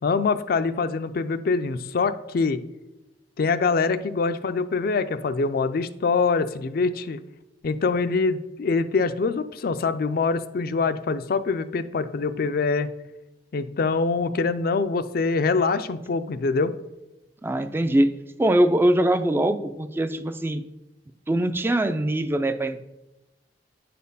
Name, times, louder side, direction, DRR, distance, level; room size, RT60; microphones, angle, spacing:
voice 1, 0.0-2.6 3.4-7.2 7.6-12.9 13.5-16.7, left 4 dB, 55° left, 12 dB, 0.4 m, -24 dB
voice 2, 17.4-18.1 18.4-20.6 21.3-22.8, right 1 dB, 10° right, 9 dB, 0.3 m, -22 dB
9.1 x 4.2 x 5.4 m, 1.0 s
head